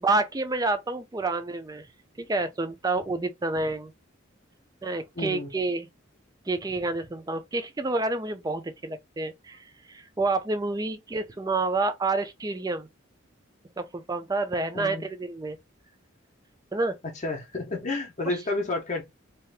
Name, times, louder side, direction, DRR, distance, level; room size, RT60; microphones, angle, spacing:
voice 1, 0.0-1.8 2.2-3.9 4.8-5.9 6.5-9.6 9.9-12.9 13.8-15.6 16.7-16.9 18.3-18.4, right 3 dB, 20° right, 0.4 m, -28 dB
voice 2, 5.2-5.5 14.7-15.1 17.2-19.0, left 2 dB, 35° left, 0.7 m, -30 dB
2.8 x 2.4 x 3.2 m
head